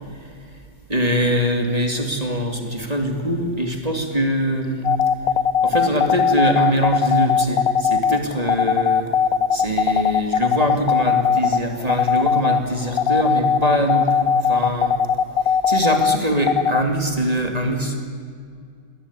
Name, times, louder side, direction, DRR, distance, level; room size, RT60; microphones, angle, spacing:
voice 1, 0.9-4.9 5.6-9.1 9.5-14.1 14.5-15.0 15.7-18.0, right 1 dB, 20° right, 4 dB, 2.6 m, -23 dB
sound 1, 4.8-16.8, left 7 dB, 60° left, 1.1 m, -19 dB
21.5 x 18.5 x 9.8 m, 2.2 s
omnidirectional pair, 1.8 m